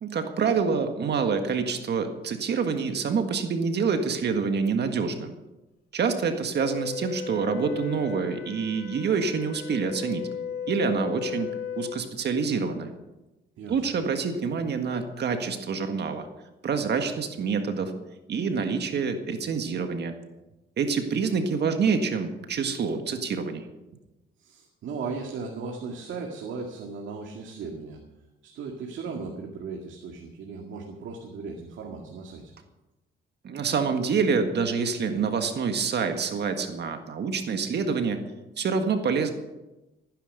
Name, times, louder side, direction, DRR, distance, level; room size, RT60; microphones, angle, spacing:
voice 1, 0.0-5.3 5.9-10.2 10.7-11.5 11.8-12.9 13.7-16.3 16.6-18.0 18.3-20.1 20.8-23.7 33.4-38.2 38.6-39.3, right 5 dB, 60° right, 6 dB, 1.7 m, -27 dB
Wind instrument woodwind instrument, 6.5-12.0, left 7 dB, 50° left, 2.1 m, -35 dB
voice 2, 24.4-28.0 28.4-32.5, right 4 dB, 75° right, 1 dB, 2.1 m, -37 dB
15.5 x 10.0 x 6.7 m, 1.0 s
cardioid pair, 90°, 20 cm